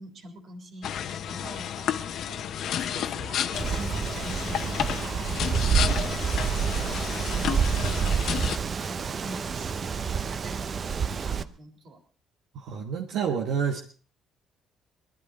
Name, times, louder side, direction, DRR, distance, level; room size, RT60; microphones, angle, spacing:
voice 1, 0.0-12.0, right 2 dB, 55° right, 5 dB, 3.5 m, -45 dB
sound 1, 0.8-8.6, left 9 dB, 65° left, 0.9 m, -31 dB
Wind, 3.5-11.4, right 6 dB, 40° right, 0.8 m, -28 dB
voice 2, 12.5-13.8, right 7 dB, 80° right, 2 dB, 1.5 m, -28 dB
20.5 x 12.5 x 4.3 m, 0.39 s
cardioid pair, 95°, 0 cm